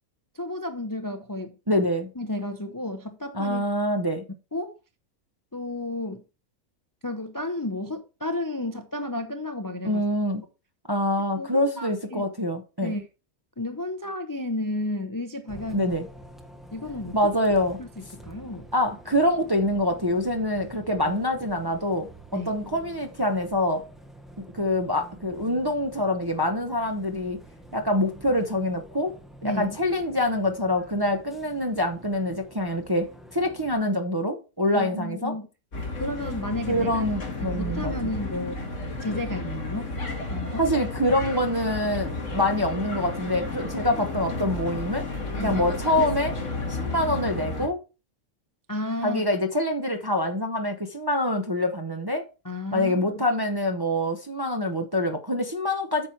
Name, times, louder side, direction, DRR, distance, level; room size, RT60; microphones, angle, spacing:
voice 1, 0.3-1.9 2.2-3.7 4.5-4.7 5.5-6.2 7.0-10.0 11.4-12.3 12.8-13.1 13.6-15.9 16.7-17.2 17.8-18.7 21.0-21.1 22.3-22.5 29.4-29.8 34.7-35.5 36.0-37.0 37.4-38.6 39.0-39.9 40.3-40.7 45.4-45.6 48.7-49.2 52.4-53.2, left 2 dB, 20° left, 0.5 m, -32 dB
voice 2, 1.7-2.1 3.3-4.2 9.8-10.4 10.9-12.9 15.7-16.1 17.1-17.8 18.7-22.1 22.3-23.8 24.5-27.4 27.7-29.1 29.4-35.3 36.7-37.9 40.6-45.1 45.4-46.4 46.7-47.8 49.0-52.2 52.7-56.1, left 1 dB, 20° right, 0.7 m, -25 dB
Bus, 15.5-33.7, right 1 dB, ahead, 0.9 m, -48 dB
sound 1, 35.7-47.7, left 2 dB, 55° left, 2.3 m, -32 dB
8.9 x 6.1 x 4.5 m
omnidirectional pair, 1.5 m